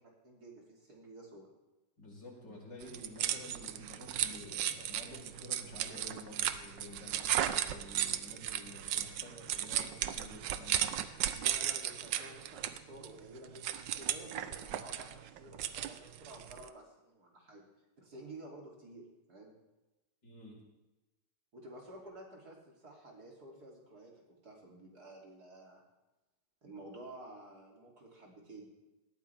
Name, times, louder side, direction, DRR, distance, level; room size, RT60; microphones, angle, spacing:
voice 1, 0.2-1.5 11.3-17.7 18.0-19.5 21.5-24.1 24.4-25.8 26.6-28.7, right 1 dB, 60° right, -2 dB, 3.5 m, -51 dB
voice 2, 2.0-10.9 20.2-20.6, left 1 dB, 80° left, -3 dB, 5.4 m, -51 dB
sound 1, 2.8-16.7, right 11 dB, 85° right, 1.4 m, -36 dB
19.0 x 13.5 x 3.5 m, 1.0 s
omnidirectional pair, 1.9 m